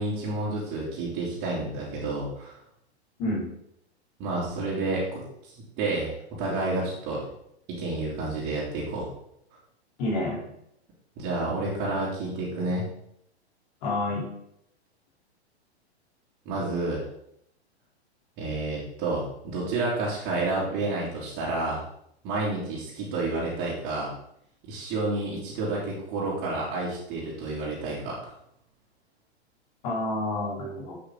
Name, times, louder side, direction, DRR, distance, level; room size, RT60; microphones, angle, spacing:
voice 1, 0.0-2.6 4.2-7.2 7.7-9.1 11.2-12.9 16.4-17.0 18.4-21.8 22.2-24.1 24.6-28.3, right 2 dB, 35° right, -9 dB, 3.0 m, -30 dB
voice 2, 10.0-10.5 13.8-14.3 29.8-31.0, left 1 dB, 45° left, -2 dB, 3.8 m, -29 dB
8.1 x 8.0 x 3.9 m, 0.75 s
hypercardioid pair, 115°, 33 cm